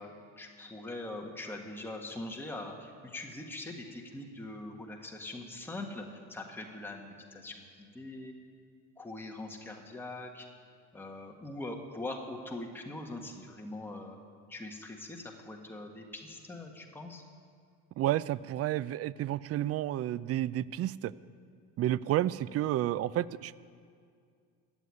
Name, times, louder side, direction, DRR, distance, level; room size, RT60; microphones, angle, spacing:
voice 1, 0.0-8.3 9.0-10.5 10.9-14.2 14.5-17.2, left 2 dB, 5° left, 1 dB, 1.7 m, -42 dB
voice 2, 18.0-21.1 21.8-23.6, right 13 dB, 45° right, 19 dB, 0.5 m, -31 dB
14.0 x 8.1 x 9.8 m, 2.2 s
supercardioid pair, 80°, 35 cm